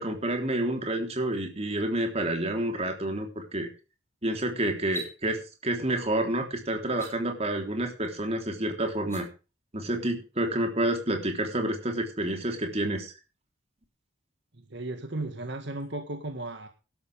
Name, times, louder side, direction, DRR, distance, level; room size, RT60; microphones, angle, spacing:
voice 1, 0.0-3.7 4.2-9.3 9.7-13.1, right 1 dB, 35° right, 3 dB, 3.7 m, -29 dB
sound 1, 4.8-5.1 6.9-7.1 8.9-9.2, left 1 dB, 15° left, 7.0 m, -39 dB
voice 2, 14.6-16.7, right 2 dB, 60° right, 6 dB, 1.8 m, -35 dB
17.0 x 12.5 x 3.5 m, 0.33 s
head